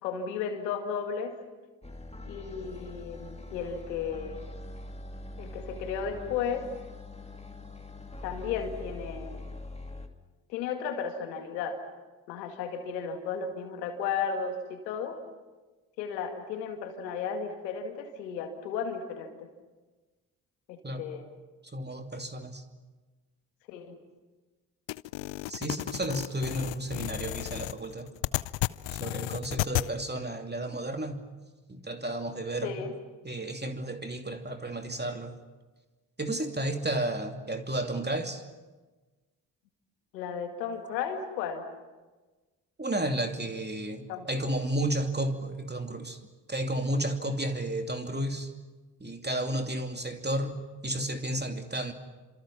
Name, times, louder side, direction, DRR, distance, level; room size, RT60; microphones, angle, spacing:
voice 1, 0.0-1.4 2.2-4.4 5.4-6.7 8.2-9.5 10.5-11.8 12.3-15.2 16.0-19.5 20.7-21.3 23.7-24.0 32.6-32.9 40.1-41.7 44.1-44.5, left 6 dB, 85° left, 5 dB, 2.2 m, -34 dB
sound 1, 1.8-10.1, left 2 dB, 15° left, 2.6 m, -43 dB
voice 2, 21.7-22.6 25.5-28.1 28.9-31.2 31.7-32.9 33.2-35.4 36.2-38.4 42.8-46.2 46.5-48.5 49.0-51.9, right 1 dB, 20° right, 5 dB, 2.8 m, -32 dB
sound 2, 24.9-29.9, left 18 dB, 60° left, 0.7 m, -33 dB
28.0 x 26.5 x 5.9 m, 1.3 s
hypercardioid pair, 40°, 49 cm